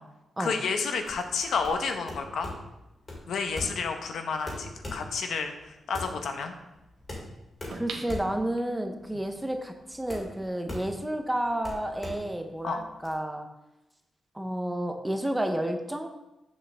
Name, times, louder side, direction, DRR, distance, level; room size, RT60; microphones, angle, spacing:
voice 1, 0.4-2.5 3.3-6.5 12.6-12.8, left 5 dB, 70° left, 5 dB, 0.8 m, -30 dB
sound 1, 1.0-13.1, left 1 dB, 25° left, 2.0 m, -41 dB
voice 2, 7.7-13.5 14.3-16.1, right 1 dB, 5° right, 5 dB, 0.5 m, -31 dB
sound 2, 7.7-9.0 9.5-9.6, right 4 dB, 80° right, 1.0 m, -41 dB
7.7 x 6.5 x 3.3 m, 0.95 s
wide cardioid pair, 175°, 0 cm